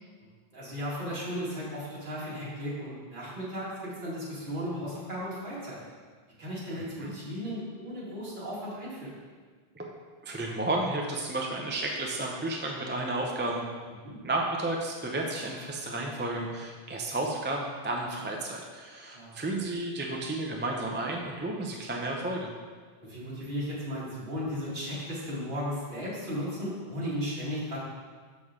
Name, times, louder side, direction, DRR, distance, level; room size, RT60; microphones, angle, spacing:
voice 1, 0.5-5.8 6.4-9.1 14.0-14.2 19.1-19.3 23.0-27.8, equal, 50° right, -8 dB, 2.2 m, -35 dB
voice 2, 6.7-7.1 9.7-9.9 10.2-13.7 14.2-22.5, right 2 dB, 15° right, 0 dB, 0.4 m, -32 dB
6.6 x 6.2 x 3.6 m, 1.5 s
omnidirectional pair, 1.1 m